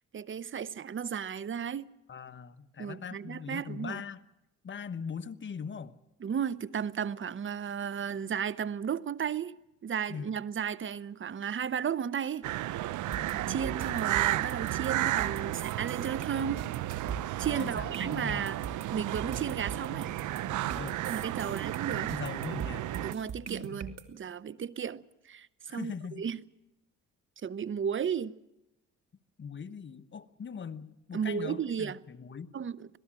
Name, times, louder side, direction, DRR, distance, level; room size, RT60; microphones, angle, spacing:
voice 1, 0.1-1.9 2.8-4.0 6.2-9.6 9.8-12.5 13.3-16.7 17.4-18.6 18.9-20.1 21.1-22.1 23.0-25.5 25.7-26.4 27.4-28.3 31.1-32.0 32.5-33.0, right 7 dB, 40° right, 0.9 m, -34 dB
voice 2, 2.1-4.2 4.6-5.9 10.1-10.3 13.1-13.3 17.6-18.4 20.7-21.0 21.4-21.5 21.9-22.9 25.7-26.2 29.4-32.5, left 6 dB, 40° left, 1.3 m, -41 dB
sound 1, 12.4-23.1, right 15 dB, 80° right, 0.7 m, -33 dB
sound 2, 13.1-24.0, right 6 dB, 55° right, 2.7 m, -42 dB
26.0 x 18.0 x 7.5 m
cardioid pair, 90°, 30 cm